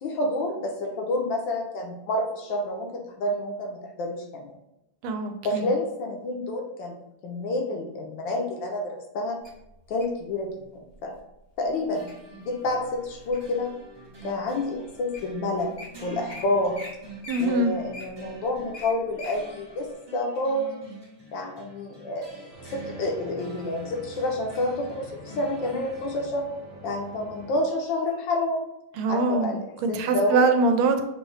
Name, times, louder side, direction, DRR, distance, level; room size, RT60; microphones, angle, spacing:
voice 1, 0.0-4.5 5.4-7.0 7.2-9.4 9.9-11.1 11.6-12.1 12.4-13.7 14.2-16.8 17.4-20.9 21.3-22.3 22.7-26.5 26.8-28.7 29.1-30.4, left 1 dB, 70° left, 1 dB, 1.4 m, -29 dB
voice 2, 5.0-5.7 17.3-17.7 29.0-29.6 29.8-31.1, right 3 dB, 85° right, 7 dB, 1.4 m, -23 dB
Wild animals, 9.4-10.2 10.9-11.2 11.7-12.1 12.6-13.6 14.2-14.3 14.9-15.0 15.1-15.3 15.6-15.9 16.3-16.4 16.7-16.9 17.2-19.4 19.8-19.9, left 2 dB, 50° left, 0.7 m, -42 dB
sound 1, 11.9-26.2, right 2 dB, 25° right, 0.6 m, -47 dB
sound 2, 22.5-27.6, right 1 dB, 50° right, 0.9 m, -45 dB
6.2 x 2.7 x 3.2 m, 0.87 s
omnidirectional pair, 2.3 m